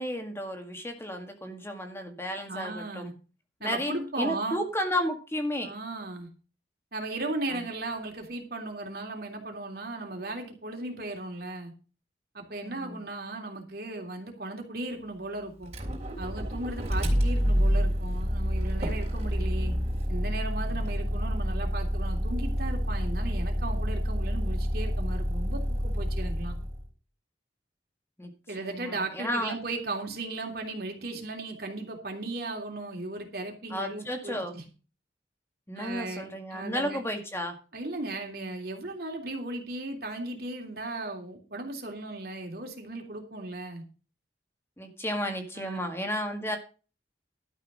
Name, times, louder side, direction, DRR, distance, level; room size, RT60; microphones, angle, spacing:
voice 1, 0.0-3.1 3.6-5.7 7.5-7.6 12.6-13.0 28.2-28.3 28.6-29.6 33.7-34.5 35.7-37.6 44.8-46.6, equal, 15° left, 4 dB, 1.9 m, -33 dB
voice 2, 2.5-3.1 3.6-4.6 5.6-6.3 6.9-11.7 12.3-15.7 16.2-19.7 20.1-26.5 28.5-34.6 35.7-37.0 37.7-43.8 45.5-45.8, right 2 dB, 55° right, 2 dB, 3.2 m, -36 dB
Motor vehicle (road), 15.6-26.8, equal, 35° right, 3.5 m, -28 dB
12.5 x 6.4 x 6.3 m, 0.34 s
head